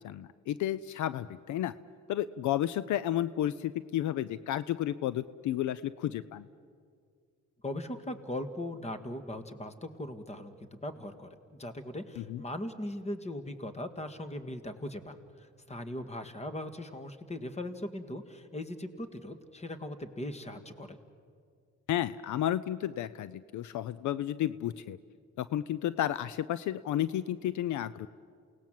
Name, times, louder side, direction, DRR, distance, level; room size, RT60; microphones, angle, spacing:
voice 1, 0.0-1.7 2.1-6.5 12.2-12.4 21.9-25.0 25.4-28.1, left 12 dB, 75° left, 16 dB, 0.6 m, -32 dB
voice 2, 7.6-10.5 10.8-21.0, left 1 dB, 20° left, 10 dB, 1.8 m, -39 dB
28.5 x 18.0 x 7.7 m, 2.1 s
cardioid pair, 90°, 30 cm